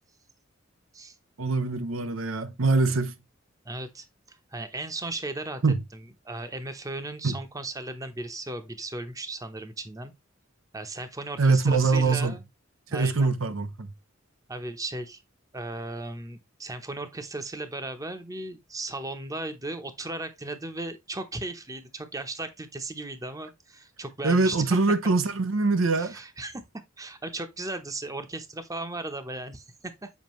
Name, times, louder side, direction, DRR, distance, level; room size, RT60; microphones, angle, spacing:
voice 1, 1.4-3.1 5.6-5.8 7.2-7.3 11.4-12.4 12.9-13.9 24.2-26.2, right 3 dB, 85° right, 0.7 m, -23 dB
voice 2, 3.6-5.6 5.9-10.1 10.7-12.4 12.9-13.3 14.5-15.2 15.5-24.7 26.0-26.6 27.0-30.1, right 2 dB, 15° right, 0.8 m, -36 dB
7.3 x 5.0 x 3.1 m
head